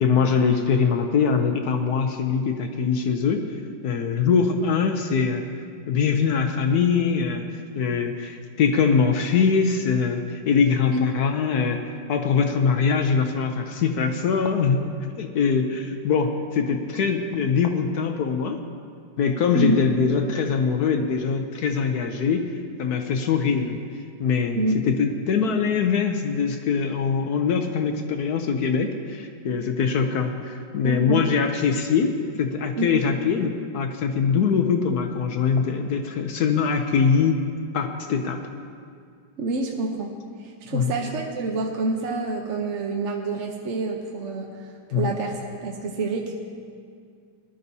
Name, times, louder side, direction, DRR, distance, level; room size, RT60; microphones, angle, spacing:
voice 1, 0.0-3.4 3.8-5.4 5.9-7.4 7.7-11.8 12.1-18.6 19.2-22.4 22.8-23.8 24.2-32.1 32.4-37.4 37.7-38.4 40.7-40.9 44.9-45.1, left 6 dB, 65° left, 5 dB, 1.1 m, -23 dB
voice 2, 30.8-31.3 32.8-33.0 39.4-40.1 40.4-44.5 44.9-46.3, right 3 dB, 55° right, 1 dB, 0.9 m, -27 dB
19.5 x 11.5 x 2.7 m, 2.2 s
omnidirectional pair, 2.0 m